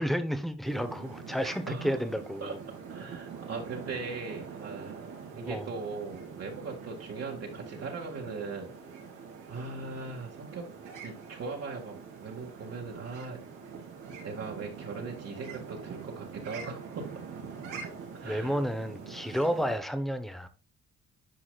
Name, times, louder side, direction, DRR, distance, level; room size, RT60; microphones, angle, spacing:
voice 1, 0.0-2.6 5.5-5.7 18.2-20.5, equal, ahead, 0.9 m, -31 dB
sound 1, 0.6-19.8, right 5 dB, 90° right, 2.5 m, -44 dB
voice 2, 1.7-2.0 2.4-2.6 2.9-5.0 5.3-8.7 9.5-10.7 11.0-13.4 14.2-17.1 18.1-18.6, right 4 dB, 55° right, 1.9 m, -39 dB
10.0 x 4.8 x 2.4 m
cardioid pair, 90°, 30 cm